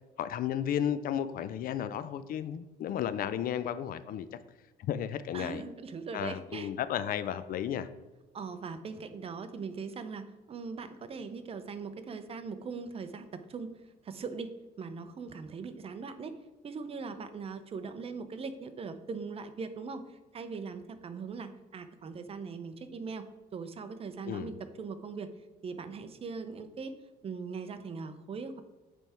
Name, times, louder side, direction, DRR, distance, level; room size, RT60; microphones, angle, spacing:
voice 1, 0.2-4.3 4.8-5.6 6.1-7.9 24.2-24.5, left 10 dB, 60° left, 12 dB, 0.4 m, -33 dB
voice 2, 5.3-6.7 8.3-13.7 14.0-14.5 14.8-16.3 16.6-23.3 23.5-25.3 25.6-26.9 27.2-28.6, right 5 dB, 35° right, 10 dB, 0.7 m, -40 dB
9.1 x 3.5 x 4.3 m, 1.1 s
cardioid pair, 110°, 17 cm